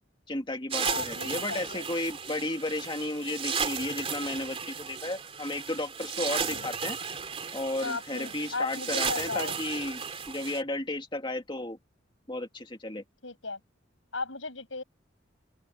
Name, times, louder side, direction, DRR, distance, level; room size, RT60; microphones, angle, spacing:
voice 1, 0.3-7.0 7.5-10.0 10.3-11.8 12.3-13.0, left 2 dB, 25° left, 2.4 m, -33 dB
sound 1, 0.7-10.6, right 6 dB, 30° right, 3.2 m, -35 dB
voice 2, 0.9-1.8 6.5-6.7 7.8-9.6 13.2-13.6 14.1-14.8, left 3 dB, 80° left, 7.3 m, -36 dB
open air
head